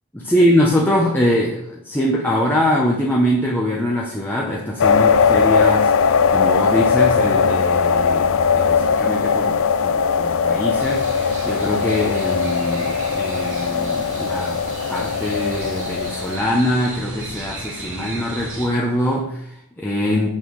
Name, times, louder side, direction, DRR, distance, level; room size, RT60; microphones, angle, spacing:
voice 1, 0.1-14.6 14.9-20.3, equal, 10° left, -3 dB, 1.2 m, -23 dB
sound 1, 4.8-16.4, left 6 dB, 65° left, 0.6 m, -19 dB
sound 2, 10.8-18.7, right 2 dB, 60° right, 2.7 m, -35 dB
6.5 x 6.0 x 7.3 m, 0.72 s
head